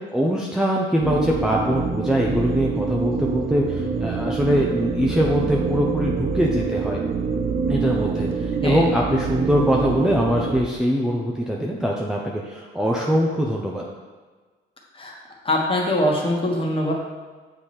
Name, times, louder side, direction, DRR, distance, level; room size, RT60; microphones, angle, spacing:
voice 1, 0.1-7.0 7.7-13.8, equal, 5° right, -3 dB, 0.6 m, -22 dB
sound 1, 1.0-10.6, right 5 dB, 45° right, 0.7 m, -26 dB
voice 2, 15.4-16.9, left 1 dB, 25° left, -2 dB, 1.4 m, -22 dB
6.9 x 3.2 x 4.3 m, 1.4 s
cardioid pair, 90°, 20 cm